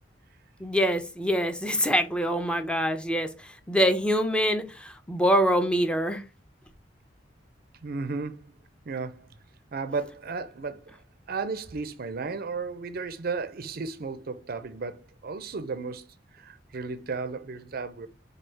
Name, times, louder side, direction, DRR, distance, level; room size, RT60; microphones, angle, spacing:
voice 1, 0.6-3.3 3.7-6.2, equal, 5° left, 0.6 m, -24 dB
voice 2, 7.8-8.6 8.9-9.3 9.7-11.0 11.3-16.1 16.3-18.1, right 4 dB, 55° right, 0.5 m, -34 dB
4.8 x 2.4 x 4.4 m
head